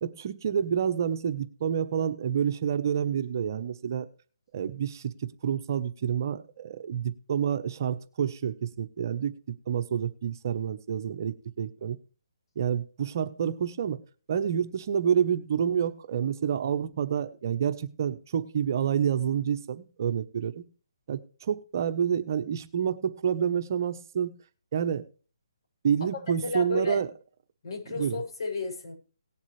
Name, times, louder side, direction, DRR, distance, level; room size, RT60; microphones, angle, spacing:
voice 1, 0.0-4.1 4.5-9.3 9.7-12.0 12.6-14.0 14.3-20.6 21.1-24.3 24.7-25.0 25.8-27.1 27.9-28.2, right 8 dB, 45° right, 10 dB, 1.1 m, -28 dB
voice 2, 26.4-27.0 27.6-28.9, left 3 dB, 65° left, 1 dB, 7.3 m, -32 dB
18.5 x 7.3 x 3.3 m, 0.38 s
hypercardioid pair, 155°, 3 cm